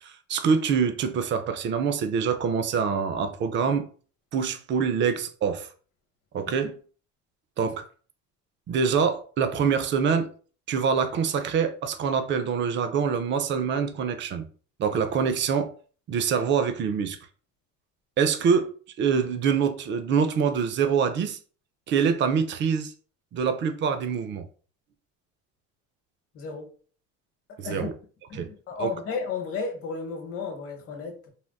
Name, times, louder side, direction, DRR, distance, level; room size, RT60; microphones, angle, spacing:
voice 1, 0.0-3.8 4.3-5.7 6.3-6.7 7.6-7.9 8.7-10.3 10.7-14.5 14.8-15.7 16.1-17.2 18.2-18.7 19.0-21.4 21.9-22.9 23.3-24.4 27.6-27.9 28.3-28.5 28.8-28.9, right 6 dB, 35° right, 0.4 m, -25 dB
voice 2, 26.3-26.7 27.6-27.9 28.3-31.3, left 4 dB, 45° left, 0.9 m, -33 dB
3.5 x 2.5 x 2.2 m
cardioid pair, 140°, 33 cm